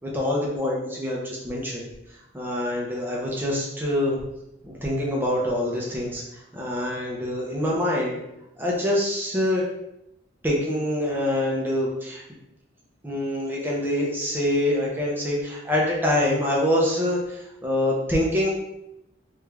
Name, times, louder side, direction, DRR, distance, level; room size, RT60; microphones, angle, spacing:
voice 1, 0.0-1.9 2.3-4.2 4.6-6.2 6.5-8.2 8.6-9.6 10.4-12.2 13.0-18.5, left 1 dB, 10° right, -3 dB, 0.6 m, -25 dB
3.3 x 2.4 x 3.3 m, 0.84 s
head